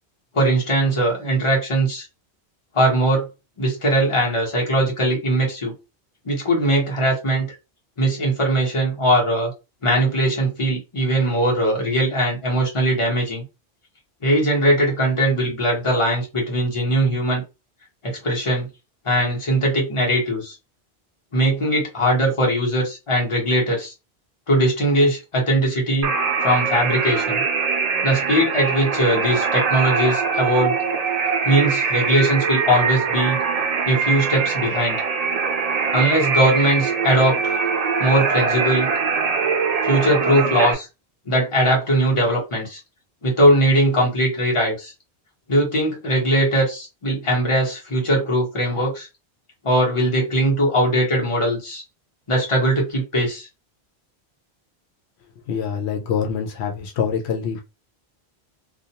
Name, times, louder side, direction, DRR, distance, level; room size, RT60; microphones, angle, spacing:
voice 1, 0.3-2.1 2.7-3.2 3.6-5.7 6.2-7.5 8.0-9.5 9.8-13.4 14.2-17.4 18.0-18.7 19.0-20.6 21.3-23.9 24.5-26.1 26.4-27.4 28.0-30.7 31.4-33.4 33.8-35.0 35.9-37.6 38.0-38.9 39.8-40.9 41.3-42.8 43.2-44.9 45.5-49.1 49.6-51.8 52.3-53.5, right 1 dB, 30° left, -2 dB, 1.1 m, -20 dB
sound 1, 26.0-40.7, right 5 dB, 50° right, 0.5 m, -22 dB
voice 2, 55.5-57.6, left 7 dB, 80° left, 2 dB, 0.8 m, -25 dB
2.4 x 2.2 x 2.8 m, 0.27 s
omnidirectional pair, 1.1 m